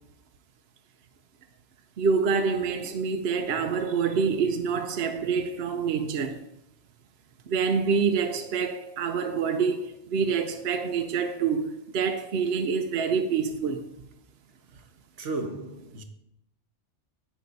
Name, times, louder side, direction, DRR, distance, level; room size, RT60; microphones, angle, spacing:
voice 1, 2.0-6.4 7.5-13.9, right 5 dB, 60° right, 1.0 m, -26 dB
voice 2, 15.2-16.0, right 2 dB, 80° right, 1.4 m, -34 dB
11.0 x 8.3 x 4.1 m
omnidirectional pair, 1.2 m